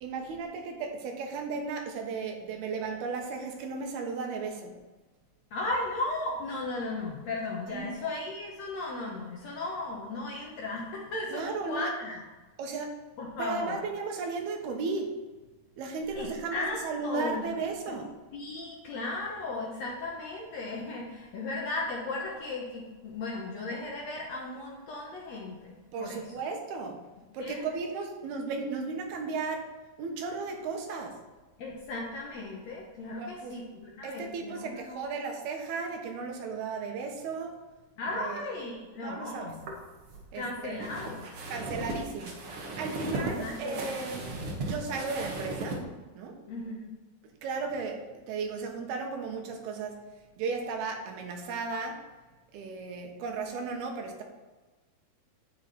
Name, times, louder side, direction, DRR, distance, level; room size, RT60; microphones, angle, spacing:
voice 1, 0.0-4.8 7.7-7.9 11.3-11.9 12.6-13.0 13.4-15.1 15.8-18.1 25.9-27.1 27.3-29.7 30.0-31.2 33.2-33.6 34.0-37.6 38.2-38.4 39.0-39.5 40.3-40.8 41.5-42.4 42.8-44.3 44.6-45.8 46.1-46.4 47.4-50.1 50.4-52.0 52.5-54.2, right 4 dB, 80° right, 3 dB, 3.2 m, -35 dB
voice 2, 5.5-12.2 13.2-13.8 16.2-17.6 17.9-18.0 18.3-26.2 27.4-27.6 31.6-35.1 38.0-39.6 40.3-41.3 43.0-43.9 46.5-46.9, left 2 dB, 60° left, -2 dB, 1.8 m, -36 dB
sound 1, 39.5-45.8, right 2 dB, 55° right, 1.6 m, -37 dB
10.5 x 8.5 x 4.2 m, 1.2 s
omnidirectional pair, 4.5 m